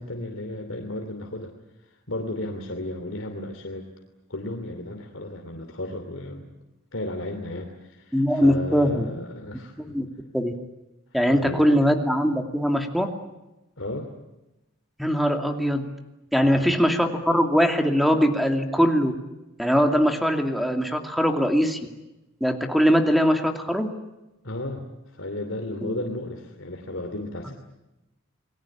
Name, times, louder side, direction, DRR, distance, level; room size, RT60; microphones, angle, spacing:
voice 1, 0.0-1.5 2.1-3.9 4.3-6.5 6.9-9.7 11.3-11.7 13.8-14.1 16.4-16.8 24.4-27.5, left 1 dB, 70° left, 3 dB, 2.8 m, -34 dB
voice 2, 8.1-9.1 9.9-10.0 10.3-10.5 11.1-13.1 15.0-15.9 16.3-19.1 19.6-21.8 22.4-23.9 25.8-25.9, equal, ahead, 5 dB, 2.6 m, -21 dB
28.5 x 21.0 x 8.6 m, 0.98 s
head